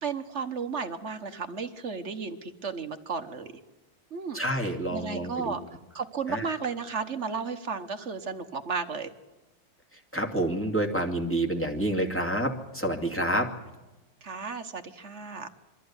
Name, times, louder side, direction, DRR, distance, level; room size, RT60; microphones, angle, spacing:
voice 1, 0.0-3.5 4.1-4.4 4.9-5.6 5.9-9.1 14.2-15.5, right 5 dB, 40° right, 8 dB, 1.3 m, -33 dB
voice 2, 4.3-5.5 6.3-6.5 10.1-13.5, right 1 dB, 5° left, 2 dB, 2.3 m, -28 dB
24.0 x 14.0 x 9.6 m, 1.1 s
omnidirectional pair, 2.1 m